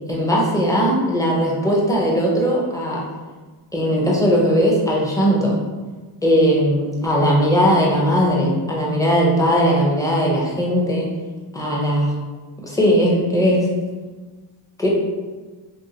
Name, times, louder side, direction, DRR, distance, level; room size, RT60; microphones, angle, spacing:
voice 1, 0.1-3.0 3.7-5.6 6.2-11.1 11.5-12.1 12.6-13.7 14.8-14.9, equal, 5° left, -3 dB, 0.6 m, -18 dB
2.7 x 2.6 x 2.8 m, 1.3 s
wide cardioid pair, 85°, 49 cm